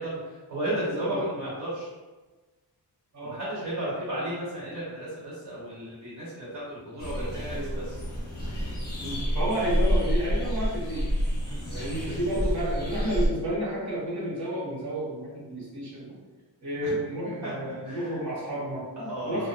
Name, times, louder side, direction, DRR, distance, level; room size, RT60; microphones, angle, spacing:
voice 1, 0.0-1.9 3.2-8.0 11.4-11.7 16.8-16.9 17.4-18.2 19.0-19.5, right 1 dB, 90° right, -7 dB, 1.2 m, -34 dB
voice 2, 0.9-1.2 3.1-3.4 7.3-7.9 9.0-11.1 11.7-16.2 16.6-18.9 19.2-19.5, equal, 45° right, -7 dB, 1.1 m, -31 dB
sound 1, 7.0-13.3, equal, 25° left, 0.8 m, -28 dB
2.8 x 2.3 x 2.3 m, 1.2 s
cardioid pair, 80°, 41 cm